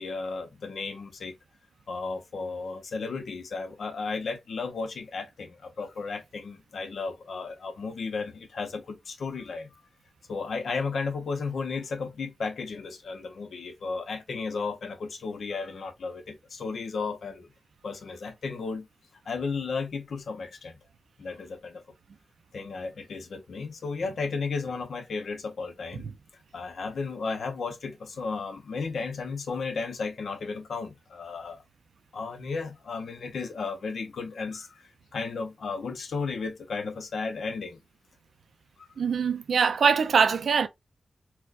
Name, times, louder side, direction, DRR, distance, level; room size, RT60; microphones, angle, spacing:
voice 1, 0.0-1.4 1.9-9.7 10.3-17.5 17.8-18.9 19.3-20.7 21.2-21.8 22.5-26.1 26.5-31.6 32.1-37.8, left 4 dB, 80° left, 0.7 m, -34 dB
voice 2, 39.0-40.7, right 6 dB, 85° right, 0.4 m, -23 dB
4.3 x 2.1 x 2.4 m
wide cardioid pair, 100°, 0 cm